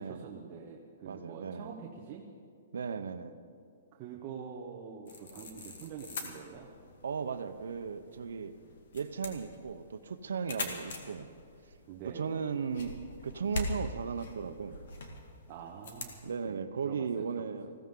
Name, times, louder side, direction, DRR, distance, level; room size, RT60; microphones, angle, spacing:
voice 1, 0.0-2.2 3.9-6.7 11.9-12.4 15.5-16.2 16.4-16.6 16.8-17.7, right 6 dB, 25° right, -2 dB, 1.0 m, -45 dB
voice 2, 1.1-1.7 2.7-3.4 7.0-8.5 8.9-11.3 12.1-14.8 16.2-17.7, right 6 dB, 90° right, 10 dB, 0.8 m, -36 dB
sound 1, 5.1-16.2, left 2 dB, 55° left, 2.0 m, -43 dB
20.5 x 16.0 x 3.8 m, 2.3 s
hypercardioid pair, 175°, 0 cm